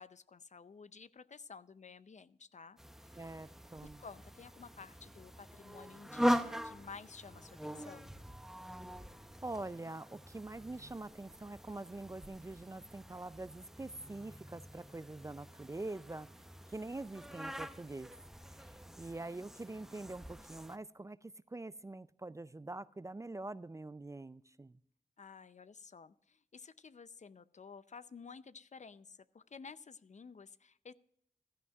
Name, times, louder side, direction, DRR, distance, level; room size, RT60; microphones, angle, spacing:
voice 1, 0.0-2.8 3.0-3.3 3.8-8.1 25.2-30.9, left 5 dB, 50° left, 0.5 m, -53 dB
sound 1, 2.8-20.8, equal, 5° right, 0.7 m, -42 dB
voice 2, 3.2-4.0 9.4-16.3 16.7-18.1 19.0-24.8, right 2 dB, 20° right, 0.4 m, -45 dB
15.0 x 12.0 x 2.4 m
cardioid pair, 60°, 15 cm